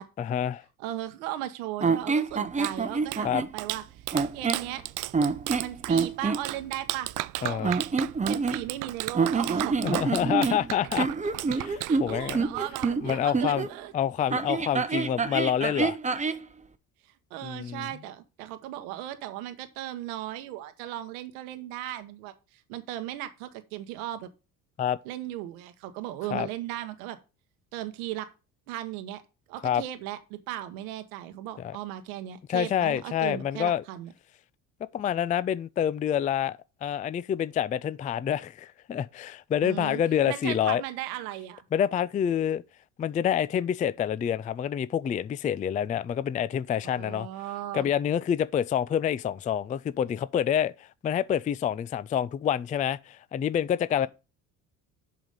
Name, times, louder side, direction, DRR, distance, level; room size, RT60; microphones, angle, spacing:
voice 1, 0.2-0.6 3.2-3.4 7.4-7.7 9.8-11.1 11.5-12.4 13.0-13.7 13.9-16.0 17.4-17.9 24.8-25.0 26.3-26.5 29.6-29.8 31.6-31.8 32.5-33.8 34.9-40.8 41.7-42.6 43.0-47.3 47.7-54.1, left 9 dB, 20° left, 0.3 m, -27 dB
voice 2, 0.8-4.0 4.3-4.8 5.6-7.1 7.4-7.8 8.3-9.8 11.8-13.9 17.0-24.3 25.0-27.2 27.7-28.3 28.7-29.2 29.5-34.1 39.6-40.0 40.3-41.6 46.8-47.9, right 13 dB, 80° right, 1.0 m, -37 dB
sound 1, 1.8-3.5 4.1-4.7 5.1-6.4 7.6-8.8 9.1-13.7 14.3-16.4, right 4 dB, 15° right, 0.8 m, -27 dB
Clapping, 2.3-13.4, right 17 dB, 50° right, 0.4 m, -36 dB
7.7 x 5.0 x 5.3 m
hypercardioid pair, 65°, 43 cm